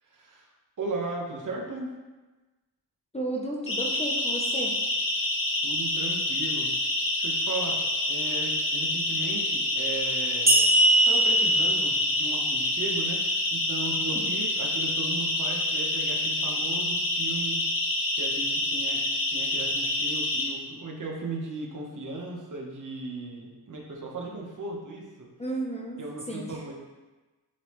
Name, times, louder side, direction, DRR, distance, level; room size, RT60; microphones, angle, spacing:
voice 1, 0.1-0.5 0.8-1.9 5.6-6.7 7.2-7.8 8.1-10.6 11.0-17.6 18.1-19.0 19.3-25.3 26.0-26.7, right 3 dB, 45° right, -1 dB, 1.2 m, -36 dB
voice 2, 3.1-4.8 14.1-14.2 25.4-26.6, right 1 dB, 15° left, -3 dB, 0.7 m, -33 dB
Siren, 3.7-20.4, left 1 dB, 50° left, 1.7 m, -27 dB
sound 1, 10.5-13.8, right 2 dB, 20° right, 0.9 m, -23 dB
10.0 x 4.0 x 3.1 m, 1.2 s
wide cardioid pair, 175°, 42 cm